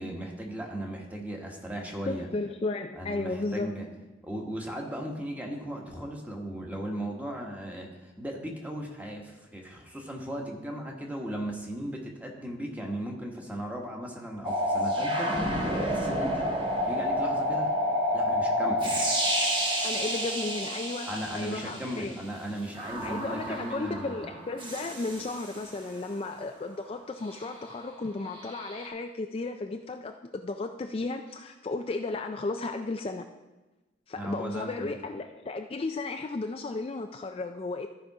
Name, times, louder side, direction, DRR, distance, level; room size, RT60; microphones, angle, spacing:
voice 1, 0.0-2.3 3.0-3.8 4.2-15.5 15.7-16.5 16.8-17.7 18.1-19.0 21.1-24.3 34.2-35.0, right 1 dB, 10° right, 0 dB, 1.3 m, -37 dB
voice 2, 2.1-3.7 19.8-22.2 23.0-33.3 34.1-37.9, left 3 dB, 30° left, 5 dB, 0.4 m, -34 dB
sound 1, 14.4-22.0 22.8-25.8 28.4-28.9, equal, 25° right, 1.2 m, -29 dB
13.5 x 5.1 x 4.7 m, 1.1 s
head